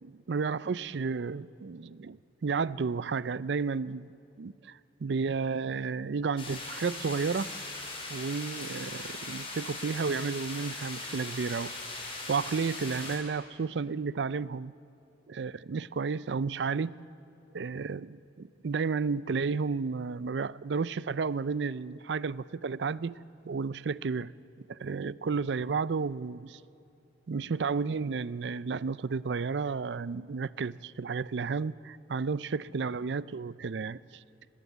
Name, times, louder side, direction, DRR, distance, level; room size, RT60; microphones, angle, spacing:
voice 1, 0.0-4.1 4.4-7.5 8.1-14.7 15.3-17.0 17.5-18.1 18.4-23.1 23.5-24.3 24.7-26.6 27.3-34.2, right 5 dB, 70° right, 18 dB, 0.5 m, -32 dB
sound 1, 6.4-13.2, left 2 dB, 30° left, 4.9 m, -39 dB
24.5 x 20.0 x 8.1 m, 2.6 s
head